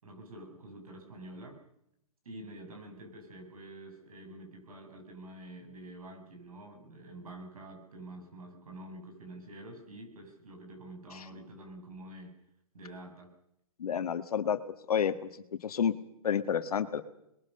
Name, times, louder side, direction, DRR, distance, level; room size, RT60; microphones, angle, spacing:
voice 1, 0.0-1.6 2.2-12.3 12.7-13.3, right 1 dB, 75° right, 3 dB, 6.8 m, -47 dB
voice 2, 13.8-14.6 14.9-15.3 15.6-15.9 16.2-17.0, left 8 dB, 85° left, 10 dB, 1.6 m, -29 dB
27.0 x 21.0 x 6.6 m, 0.80 s
hypercardioid pair, 175°, 19 cm